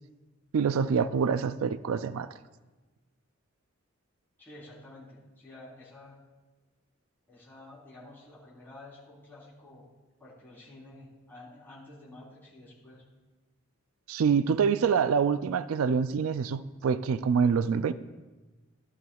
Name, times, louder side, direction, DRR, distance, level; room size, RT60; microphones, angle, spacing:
voice 1, 0.5-2.3 14.1-17.9, right 6 dB, 85° right, 0.4 m, -26 dB
voice 2, 4.4-6.2 7.3-9.9 10.2-13.0, left 2 dB, 10° left, 3.5 m, -50 dB
15.0 x 12.0 x 2.3 m
head